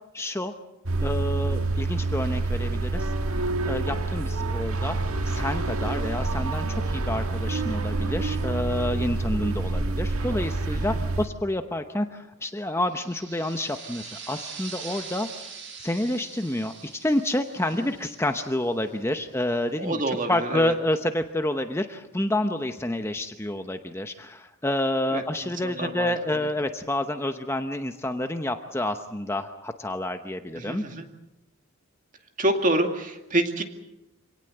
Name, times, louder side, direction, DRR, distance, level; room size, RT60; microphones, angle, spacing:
voice 1, 0.1-0.5 1.0-3.1 3.6-5.0 5.2-15.3 15.8-20.0 20.3-30.8, left 1 dB, 10° left, 7 dB, 0.8 m, -28 dB
sound 1, 0.9-11.3, right 3 dB, 75° right, 1.7 m, -27 dB
voice 2, 10.7-11.0 17.7-17.9 19.8-20.7 25.1-26.5 30.6-31.1 32.4-33.6, right 1 dB, 35° right, 5 dB, 2.3 m, -28 dB
sound 2, 12.8-19.1, right 6 dB, 55° right, 5.6 m, -43 dB
26.0 x 18.0 x 7.9 m, 0.95 s
head